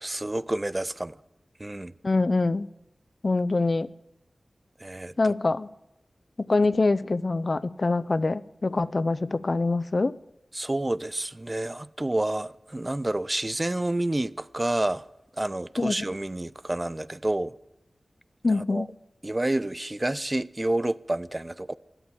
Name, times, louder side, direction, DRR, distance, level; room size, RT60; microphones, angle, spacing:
voice 1, 0.0-1.2 1.6-1.9 4.8-5.1 10.5-15.0 15.4-17.5 18.4-18.9 19.2-21.7, right 1 dB, 25° right, 0.4 m, -29 dB
voice 2, 2.0-2.7 3.2-3.9 5.2-5.7 6.4-10.1 15.8-16.0 18.4-18.9, left 3 dB, 55° left, 0.5 m, -24 dB
13.0 x 11.0 x 8.7 m
cardioid pair, 50°, 0 cm